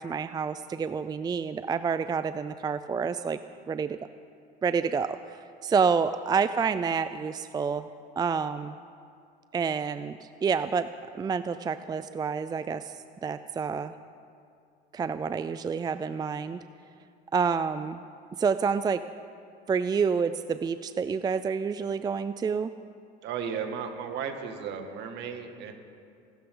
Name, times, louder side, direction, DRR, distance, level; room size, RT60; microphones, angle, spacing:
voice 1, 0.0-3.4 3.7-4.0 4.6-5.2 5.6-7.9 8.2-8.8 9.5-10.9 11.1-13.9 14.9-16.6 17.3-18.0 18.4-19.0 19.7-22.7, right 6 dB, 20° right, 12 dB, 0.4 m, -28 dB
voice 2, 23.2-25.7, right 7 dB, 60° right, 4 dB, 2.1 m, -35 dB
27.5 x 13.0 x 3.9 m, 2.4 s
supercardioid pair, 105°, 20 cm